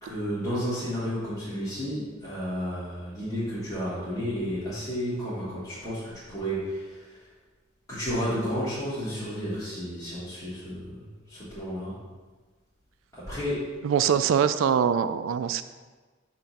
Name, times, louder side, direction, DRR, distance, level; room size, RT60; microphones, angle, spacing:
voice 1, 0.0-7.0 7.9-12.0 13.1-13.7, equal, 15° left, -12 dB, 1.6 m, -32 dB
voice 2, 13.8-15.6, right 7 dB, 85° right, 12 dB, 0.3 m, -23 dB
5.7 x 3.0 x 5.5 m, 1.3 s
head